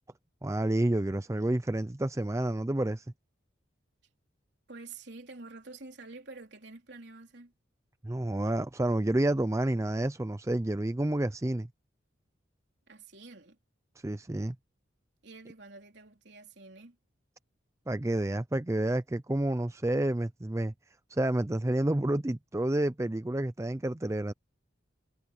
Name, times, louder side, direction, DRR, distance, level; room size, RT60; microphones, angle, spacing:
voice 1, 0.4-3.0 8.0-11.7 14.0-14.6 17.9-20.7 21.1-24.3, right 1 dB, 15° right, 0.4 m, -29 dB
voice 2, 4.7-7.5 12.9-13.6 15.2-17.0, right 3 dB, 65° right, 3.6 m, -48 dB
head